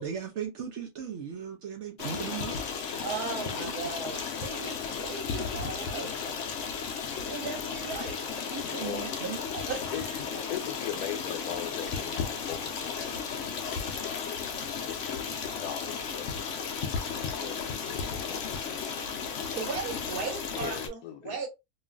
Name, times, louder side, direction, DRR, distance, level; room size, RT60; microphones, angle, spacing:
voice 1, 0.0-2.6 3.5-3.7 8.8-9.4, right 8 dB, 65° right, 0.8 m, -37 dB
Stream, 2.0-20.9, left 6 dB, 65° left, 0.8 m, -34 dB
voice 2, 3.0-6.1 7.2-10.2 19.5-21.5, right 5 dB, 80° right, 1.5 m, -38 dB
voice 3, 8.6-9.1 9.9-13.8 14.0-14.4 14.7-16.5 17.3-19.0 20.5-21.3, left 9 dB, 80° left, 1.2 m, -40 dB
3.0 x 2.5 x 2.3 m
omnidirectional pair, 1.6 m